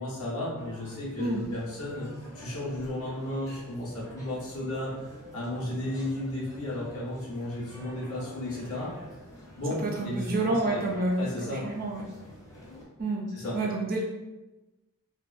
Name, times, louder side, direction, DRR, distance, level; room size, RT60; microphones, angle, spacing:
voice 1, 0.0-2.1 2.3-8.9 9.6-10.8 11.2-11.6 13.3-13.6, left 1 dB, 75° left, -7 dB, 1.1 m, -34 dB
sound 1, 0.6-12.9, equal, 15° left, 0.5 m, -47 dB
voice 2, 9.7-12.1 13.0-14.0, right 2 dB, 40° right, -1 dB, 0.5 m, -29 dB
2.6 x 2.4 x 2.3 m, 1.0 s
head